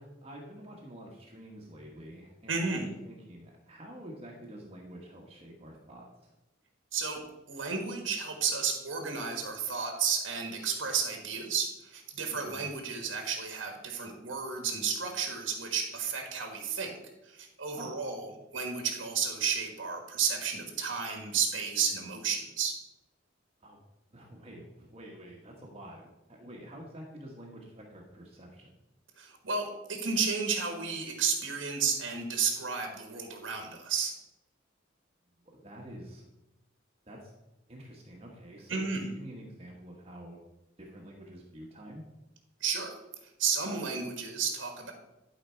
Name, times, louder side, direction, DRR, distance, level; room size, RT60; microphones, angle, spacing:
voice 1, 0.0-6.3 12.3-12.6 17.7-17.9 23.6-23.8 24.1-28.7 35.5-36.3 37.1-37.3 37.7-40.4 40.8-42.0, right 1 dB, 30° right, -2 dB, 1.3 m, -48 dB
voice 2, 2.5-2.8 6.9-7.2 7.5-17.0 17.2-22.8 29.2-34.1 38.7-39.0 42.6-42.9 43.2-44.9, right 6 dB, 85° right, 3 dB, 1.6 m, -32 dB
11.5 x 5.0 x 4.5 m, 0.94 s
head